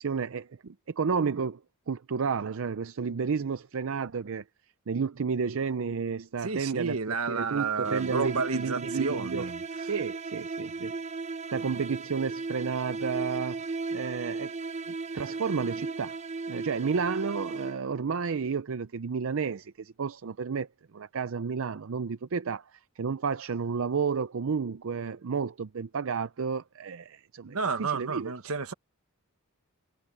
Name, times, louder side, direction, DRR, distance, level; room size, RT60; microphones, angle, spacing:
voice 1, 0.0-1.6 1.9-4.4 4.9-7.0 7.3-9.5 9.8-10.9 11.5-13.6 13.9-14.6 15.1-16.2 16.5-20.7 20.9-28.5, right 5 dB, 60° right, 0.5 m, -31 dB
voice 2, 6.4-9.6 27.4-28.7, right 4 dB, 80° right, 1.5 m, -31 dB
sound 1, 7.8-18.1, right 4 dB, 30° right, 0.9 m, -36 dB
head